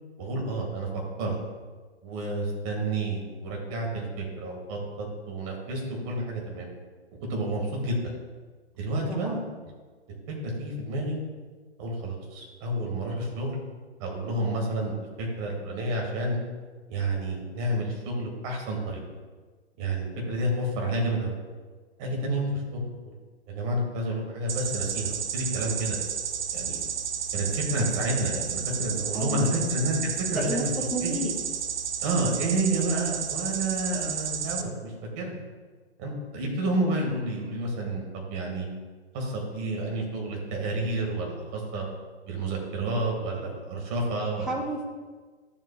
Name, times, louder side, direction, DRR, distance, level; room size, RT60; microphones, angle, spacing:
voice 1, 0.2-0.9 1.2-1.4 2.0-6.7 7.3-8.0 8.8-9.4 10.3-11.2 11.8-13.6 14.0-16.4 16.9-19.0 19.8-21.3 22.0-23.1 23.5-26.0 26.5-26.8 27.3-30.7 31.0-31.2 32.0-35.4 36.0-38.7 39.1-41.8 42.3-44.6, right 1 dB, 30° right, 0 dB, 2.0 m, -30 dB
voice 2, 9.1-9.4 29.1-29.6 30.3-31.3 44.4-44.8, right 1 dB, ahead, -3 dB, 0.6 m, -31 dB
sound 1, 24.5-34.6, right 7 dB, 60° right, 0.7 m, -32 dB
12.0 x 7.3 x 2.3 m, 1.4 s
figure-of-eight pair, 120°, 33 cm